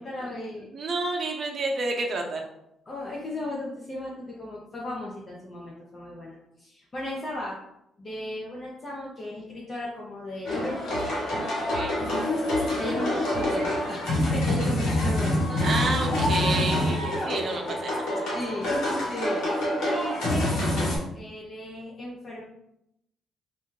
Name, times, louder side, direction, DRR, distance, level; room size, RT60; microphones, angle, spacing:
voice 1, 0.0-0.7 2.9-7.6 8.0-11.3 12.7-15.6 16.9-17.4 18.3-18.7 19.1-19.5 19.8-22.4, left 1 dB, 35° left, -4 dB, 0.7 m, -36 dB
voice 2, 0.7-2.4 11.7-12.0 15.6-18.3, right 3 dB, 50° right, 1 dB, 0.6 m, -30 dB
sound 1, 10.4-21.0, left 1 dB, 80° left, 1.4 m, -26 dB
2.7 x 2.2 x 3.7 m, 0.81 s
cardioid pair, 90°, 0 cm